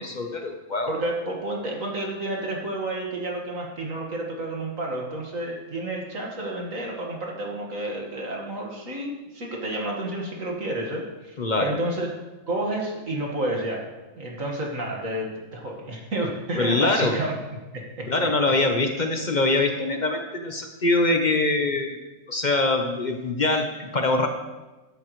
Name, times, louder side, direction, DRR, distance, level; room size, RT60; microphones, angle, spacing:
voice 1, 0.0-0.9 11.4-11.7 16.6-17.2 18.1-22.0 22.3-24.3, left 2 dB, 45° left, 4 dB, 0.5 m, -23 dB
voice 2, 0.9-12.1 12.5-13.9 14.2-17.3 17.7-18.1, right 1 dB, 45° right, -1 dB, 2.1 m, -30 dB
12.5 x 12.0 x 3.2 m, 1.1 s
omnidirectional pair, 2.1 m